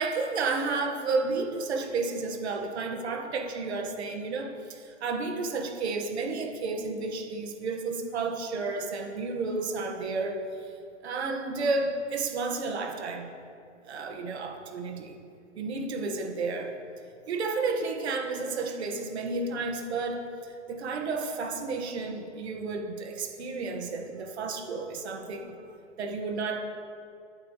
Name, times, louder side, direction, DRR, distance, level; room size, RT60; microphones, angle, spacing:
voice 1, 0.0-10.4 11.0-13.3 13.8-15.2 15.6-16.7 17.3-25.7 26.0-26.6, right 3 dB, 60° right, 2 dB, 2.0 m, -31 dB
21.5 x 8.7 x 3.4 m, 2.5 s
hypercardioid pair, 160°, 38 cm